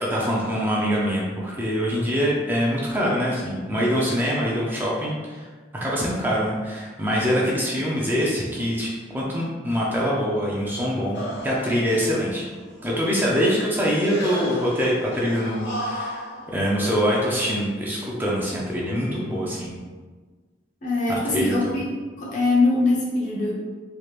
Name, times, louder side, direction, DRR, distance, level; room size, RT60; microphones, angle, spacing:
voice 1, 0.0-5.5 5.8-12.5 12.8-16.2 16.5-19.7 21.3-21.7, equal, 10° right, -5 dB, 0.4 m, -24 dB
sound 1, 11.1-12.9 13.9-17.3, left 1 dB, 65° left, 1.0 m, -34 dB
voice 2, 13.3-13.7 20.8-21.8 22.2-23.5, left 2 dB, 40° left, -4 dB, 0.7 m, -23 dB
3.3 x 3.0 x 2.4 m, 1.4 s
head